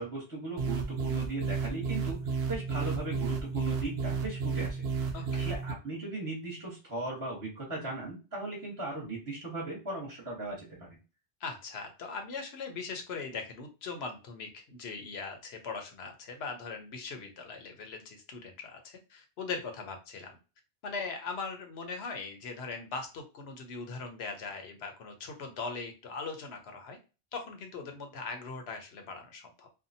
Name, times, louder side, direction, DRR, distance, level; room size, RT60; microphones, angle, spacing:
voice 1, 0.0-4.8 5.3-11.0, right 2 dB, 20° right, -4 dB, 1.1 m, -38 dB
sound 1, 0.6-5.7, right 5 dB, 70° right, 0.9 m, -32 dB
voice 2, 5.1-5.5 11.4-20.3 20.8-27.0 27.3-29.7, left 4 dB, 65° left, 5 dB, 0.9 m, -40 dB
2.7 x 2.3 x 2.6 m, 0.32 s
omnidirectional pair, 1.2 m